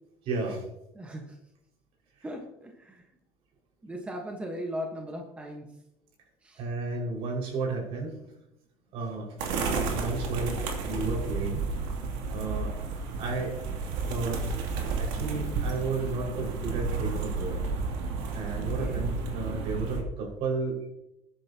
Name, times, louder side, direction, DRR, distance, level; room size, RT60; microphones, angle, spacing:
voice 1, 0.2-0.6 6.6-8.1 8.9-9.4 9.9-10.6 10.9-11.7 12.3-12.7 13.2-13.5 14.1-14.4 15.0-17.6 18.3-20.9, right 3 dB, 60° right, -1 dB, 5.4 m, -32 dB
voice 2, 0.9-1.4 2.2-3.1 3.8-5.7 6.4-6.7 18.6-19.0, equal, 10° right, 1 dB, 1.3 m, -38 dB
sound 1, 9.4-20.0, right 4 dB, 90° right, 2.8 m, -32 dB
19.5 x 10.5 x 2.9 m, 0.86 s
cardioid pair, 155°, 11 cm